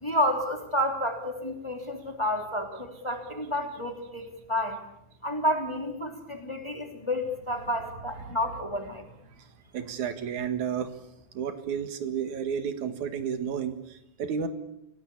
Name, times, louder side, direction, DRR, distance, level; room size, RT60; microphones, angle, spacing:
voice 1, 0.0-4.8 5.2-9.1, left 1 dB, 10° left, 4 dB, 2.8 m, -30 dB
voice 2, 9.7-10.9 11.3-14.5, right 7 dB, 85° right, 9 dB, 3.2 m, -31 dB
28.0 x 17.5 x 8.5 m, 0.83 s
omnidirectional pair, 3.3 m